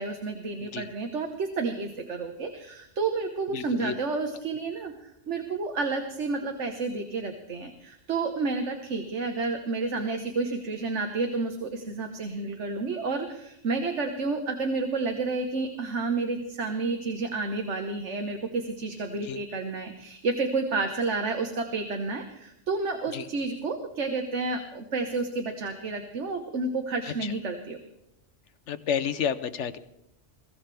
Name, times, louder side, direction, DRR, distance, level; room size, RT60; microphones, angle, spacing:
voice 1, 0.0-27.8, right 3 dB, 65° right, 4 dB, 1.5 m, -30 dB
voice 2, 3.5-3.9 19.2-19.4 23.1-23.3 27.0-27.3 28.7-29.8, left 7 dB, 70° left, 11 dB, 1.1 m, -31 dB
22.5 x 15.5 x 3.4 m, 0.82 s
omnidirectional pair, 1.3 m